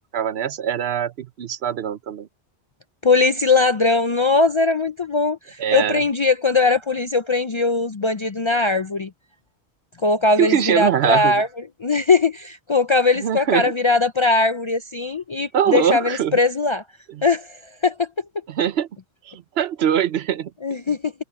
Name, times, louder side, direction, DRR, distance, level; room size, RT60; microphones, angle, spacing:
voice 1, 0.1-2.3 5.6-6.0 10.4-11.4 13.2-13.7 15.5-16.4 17.1-17.2 18.5-18.9 19.3-20.5, right 9 dB, 75° right, 0.9 m, -22 dB
voice 2, 3.0-9.1 10.0-11.5 11.8-16.8 17.2-18.1 20.6-21.1, left 3 dB, 40° left, 0.4 m, -20 dB
omnidirectional pair, 1.1 m